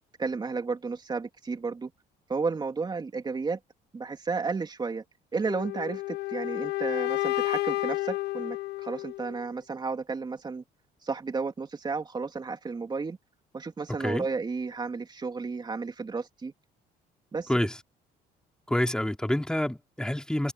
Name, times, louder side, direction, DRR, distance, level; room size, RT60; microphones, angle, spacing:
voice 1, 0.2-1.9 2.3-3.6 3.9-5.0 5.3-10.6 11.0-13.2 13.5-16.5 17.3-17.5, right 4 dB, 25° right, 3.1 m, -32 dB
sound 1, 5.4-9.4, left 17 dB, 75° left, 0.7 m, -31 dB
voice 2, 18.7-20.5, left 1 dB, 5° left, 2.8 m, -27 dB
cardioid pair, 110°, 17 cm